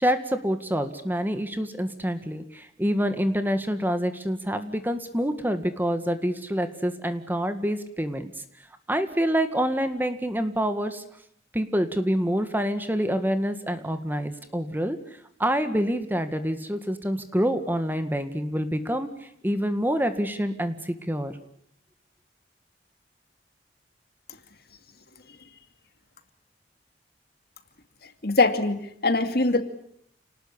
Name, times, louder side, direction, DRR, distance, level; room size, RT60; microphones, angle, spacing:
voice 1, 0.0-8.3 8.9-11.0 11.5-15.0 15.4-19.1 19.4-21.3, equal, 10° right, 9 dB, 1.9 m, -26 dB
voice 2, 28.2-29.6, left 3 dB, 60° left, 9 dB, 2.4 m, -22 dB
28.5 x 19.5 x 9.9 m, 0.69 s
head